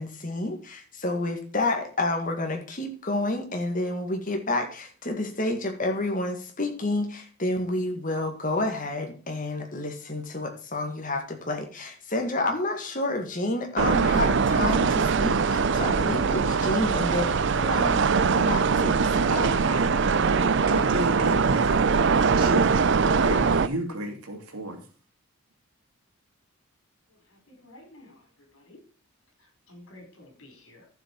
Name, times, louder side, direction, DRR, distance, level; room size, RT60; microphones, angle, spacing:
voice 1, 0.0-19.6, left 2 dB, 35° left, 4 dB, 2.0 m, -30 dB
sound 1, 13.8-23.7, right 5 dB, 55° right, 0.5 m, -22 dB
voice 2, 19.3-21.9 22.3-24.8, right 1 dB, 85° right, 4 dB, 2.7 m, -32 dB
voice 3, 27.1-28.8 29.4-30.9, left 1 dB, 65° left, 3 dB, 4.7 m, -52 dB
12.0 x 7.4 x 4.6 m, 0.39 s
head